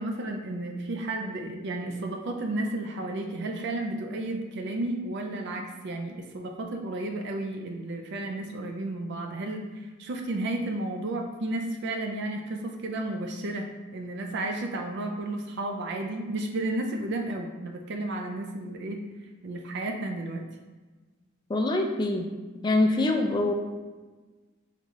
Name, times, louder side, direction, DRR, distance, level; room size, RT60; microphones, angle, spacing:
voice 1, 0.0-19.0 19.4-20.4, right 2 dB, 60° right, 3 dB, 0.4 m, -32 dB
voice 2, 21.5-22.2 22.6-23.5, left 2 dB, 20° left, 3 dB, 0.4 m, -24 dB
3.8 x 3.5 x 3.1 m, 1.3 s
head